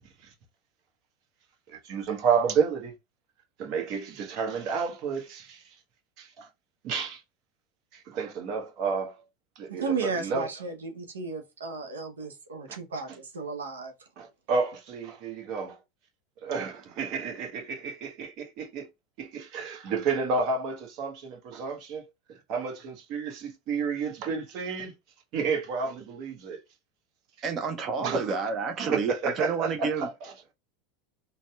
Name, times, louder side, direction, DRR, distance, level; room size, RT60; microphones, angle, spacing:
voice 1, 1.7-2.9 3.6-5.6 6.2-6.5 6.8-7.2 7.9-9.2 9.6-10.5 12.7-12.8 14.2-15.8 16.4-18.9 19.2-22.0 22.3-24.9 25.3-26.6 28.0-28.3 28.8-30.1, right 5 dB, 55° right, 0.9 m, -31 dB
voice 2, 9.7-13.9, right 4 dB, 85° right, 0.7 m, -34 dB
voice 3, 27.4-30.1, right 5 dB, 35° right, 0.5 m, -30 dB
4.0 x 2.1 x 2.2 m
hypercardioid pair, 85°, 0 cm